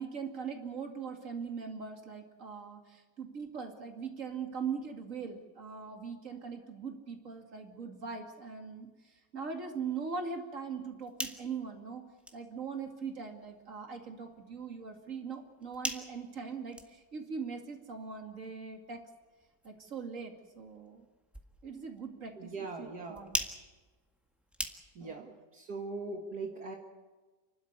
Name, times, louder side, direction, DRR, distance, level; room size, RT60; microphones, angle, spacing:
voice 1, 0.0-12.1 12.3-19.0 19.6-21.1 21.6-23.4 25.0-25.3, right 5 dB, 45° right, 4 dB, 2.7 m, -41 dB
sound 1, 10.8-25.2, equal, ahead, 1.5 m, -45 dB
voice 2, 22.4-23.3 25.0-26.8, right 3 dB, 65° right, 2 dB, 2.2 m, -41 dB
29.5 x 12.0 x 9.6 m, 1.3 s
omnidirectional pair, 1.9 m